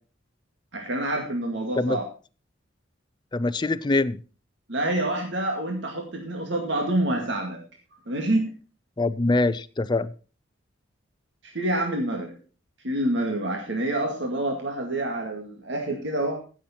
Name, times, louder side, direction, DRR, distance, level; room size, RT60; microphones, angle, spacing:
voice 1, 0.7-2.1 4.7-7.6 8.1-8.5 11.5-12.3 12.8-16.4, right 1 dB, 65° right, 1 dB, 2.1 m, -27 dB
voice 2, 3.3-4.2 9.0-10.1, left 2 dB, 25° left, 14 dB, 0.5 m, -23 dB
16.0 x 7.3 x 4.4 m, 0.36 s
head